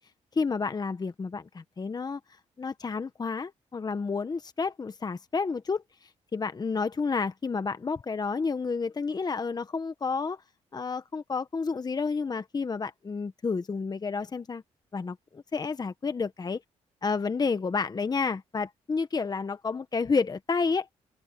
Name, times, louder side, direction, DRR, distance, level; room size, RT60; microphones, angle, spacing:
voice 1, 0.3-2.2 2.6-5.8 6.3-10.4 10.7-14.6 14.9-16.6 17.0-20.9, left 4 dB, 30° left, 1.2 m, -30 dB
open air
cardioid pair, 80°, 13 cm